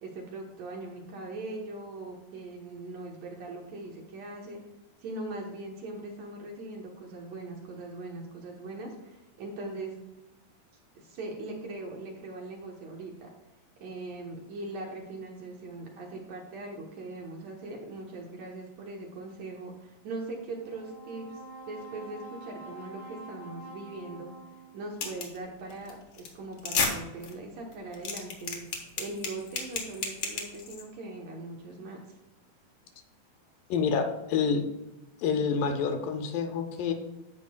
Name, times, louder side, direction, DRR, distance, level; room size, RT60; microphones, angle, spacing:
voice 1, 0.0-4.6 5.0-9.9 11.0-13.3 13.8-21.3 21.7-24.3 24.7-28.6 29.0-32.0, right 2 dB, 65° right, 0 dB, 1.9 m, -40 dB
Brass instrument, 20.6-25.0, right 2 dB, 20° right, 1.8 m, -46 dB
Duct Tape Delay, 25.0-25.4 25.7-25.9 26.2-26.3 26.6-26.9 27.2-27.3 27.7-30.8, left 5 dB, 60° left, 1.8 m, -31 dB
voice 2, 33.7-34.7 35.2-36.9, left 6 dB, 75° left, 5 dB, 2.3 m, -28 dB
15.5 x 5.3 x 2.3 m, 0.97 s
omnidirectional pair, 4.2 m